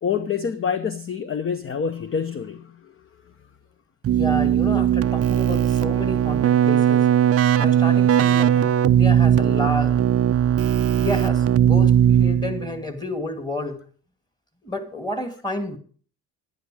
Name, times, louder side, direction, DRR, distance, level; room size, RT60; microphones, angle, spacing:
voice 1, 0.0-2.9, left 6 dB, 30° left, 0.8 m, -27 dB
Keyboard (musical), 4.0-12.8, right 10 dB, 35° right, 0.5 m, -18 dB
voice 2, 4.1-7.1 7.6-10.0 11.0-13.8 14.6-15.8, left 1 dB, 10° left, 2.3 m, -30 dB
10.5 x 10.5 x 4.8 m
supercardioid pair, 75°, 43 cm